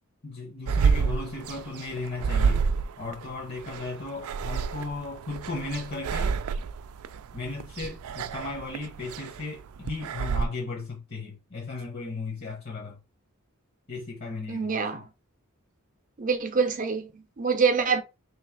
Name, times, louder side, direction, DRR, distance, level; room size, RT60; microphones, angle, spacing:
voice 1, 0.2-2.7 3.0-6.4 7.3-13.0 13.9-15.1, left 3 dB, 45° left, 1.1 m, -36 dB
sound 1, 0.7-10.5, right 5 dB, 80° right, 0.4 m, -29 dB
voice 2, 14.5-15.0 16.2-18.0, right 5 dB, 35° right, 0.6 m, -25 dB
3.2 x 3.0 x 4.7 m
head